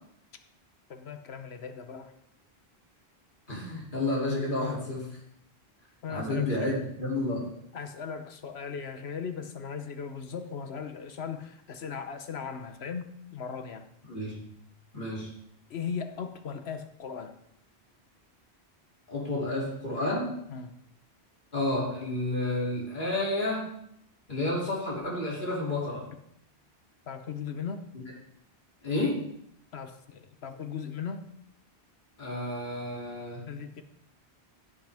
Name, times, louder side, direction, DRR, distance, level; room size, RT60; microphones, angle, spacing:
voice 1, 0.9-2.1 6.0-6.7 7.7-13.9 15.7-17.4 20.5-20.8 27.1-27.8 29.7-31.3 33.5-33.8, left 6 dB, 75° left, 8 dB, 1.2 m, -38 dB
voice 2, 3.5-5.1 6.1-7.5 14.1-14.4 14.9-15.3 19.1-20.3 21.5-23.7 24.3-26.0 28.8-29.2 32.2-33.4, left 2 dB, 50° left, -5 dB, 3.2 m, -30 dB
16.5 x 7.7 x 3.5 m, 0.74 s
omnidirectional pair, 1.1 m